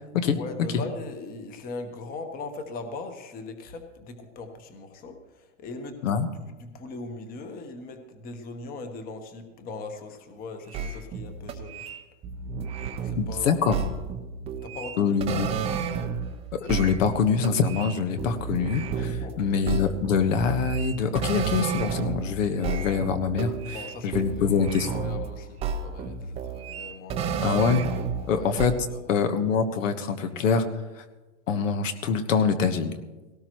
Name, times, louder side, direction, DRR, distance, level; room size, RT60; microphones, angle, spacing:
voice 1, 0.2-11.9 13.0-13.6 14.6-15.5 19.2-19.7 23.7-27.6 28.2-29.2, left 3 dB, 20° left, 6 dB, 1.2 m, -40 dB
sound 1, 10.7-16.3 16.7-22.4 22.6-25.3 25.6-28.3 28.6-28.7, right 6 dB, 15° right, 0.6 m, -31 dB
voice 2, 13.1-13.8 15.0-15.5 16.6-23.8 24.0-24.9 27.4-27.8 28.3-28.7 29.1-30.6 31.5-32.9, left 6 dB, 70° left, 8 dB, 1.4 m, -24 dB
18.0 x 17.5 x 3.1 m, 1.2 s
hypercardioid pair, 145°, 40 cm